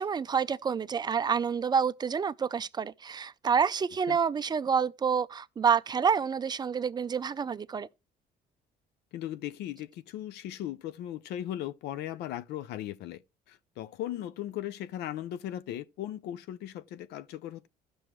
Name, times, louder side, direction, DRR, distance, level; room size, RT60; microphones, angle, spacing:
voice 1, 0.0-7.9, right 6 dB, 25° right, 0.4 m, -28 dB
voice 2, 9.1-13.2 13.5-17.7, left 12 dB, 80° left, 0.6 m, -37 dB
15.5 x 6.2 x 3.1 m
cardioid pair, 110°, 17 cm